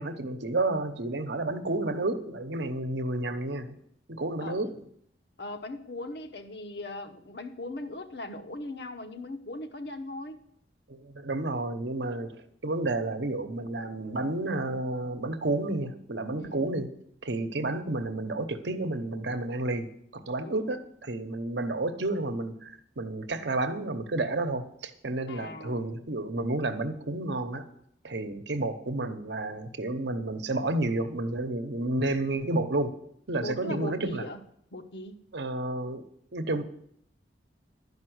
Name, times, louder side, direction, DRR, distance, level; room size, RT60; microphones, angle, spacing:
voice 1, 0.0-3.7 4.1-4.7 10.9-16.9 17.2-27.7 28.0-32.9 33.3-34.2 35.3-36.0 36.3-36.6, right 2 dB, 70° right, 9 dB, 0.9 m, -31 dB
voice 2, 4.4-4.8 5.4-10.4 16.4-16.6 20.4-20.8 25.3-26.0 33.4-34.4 34.7-35.2, left 2 dB, 65° left, 8 dB, 1.0 m, -39 dB
12.0 x 5.4 x 7.9 m, 0.70 s
head